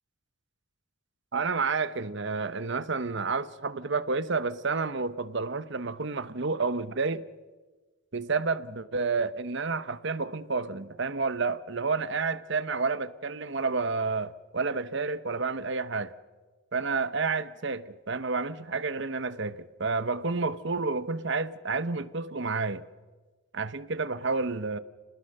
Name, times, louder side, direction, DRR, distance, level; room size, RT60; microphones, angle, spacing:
voice 1, 1.3-7.3 8.1-16.1 16.7-22.8 23.5-24.8, right 4 dB, 55° right, 0.9 m, -30 dB
28.0 x 20.0 x 6.7 m
head